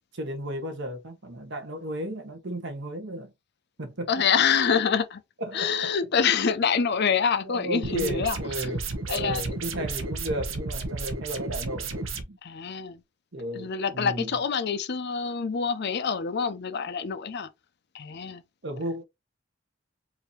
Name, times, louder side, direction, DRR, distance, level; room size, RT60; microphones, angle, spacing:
voice 1, 0.1-3.3 3.8-4.3 5.4-5.9 7.4-12.4 13.3-14.3 18.6-19.0, right 1 dB, 65° right, 1.2 m, -34 dB
voice 2, 4.1-5.2 5.5-8.7 9.1-9.4 12.4-13.0 13.5-17.5 17.9-18.4, left 6 dB, 55° left, 0.6 m, -26 dB
sound 1, 7.8-12.2, right 3 dB, 85° right, 0.9 m, -32 dB
4.9 x 2.7 x 3.1 m
head